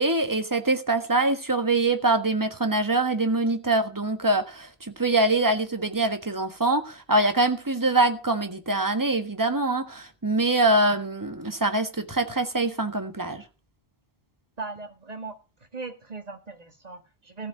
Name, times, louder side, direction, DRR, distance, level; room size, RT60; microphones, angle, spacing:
voice 1, 0.0-13.4, right 2 dB, 20° right, 1.4 m, -24 dB
voice 2, 14.6-15.4 15.7-17.5, right 3 dB, 40° right, 1.7 m, -38 dB
15.0 x 4.9 x 8.2 m
omnidirectional pair, 1.1 m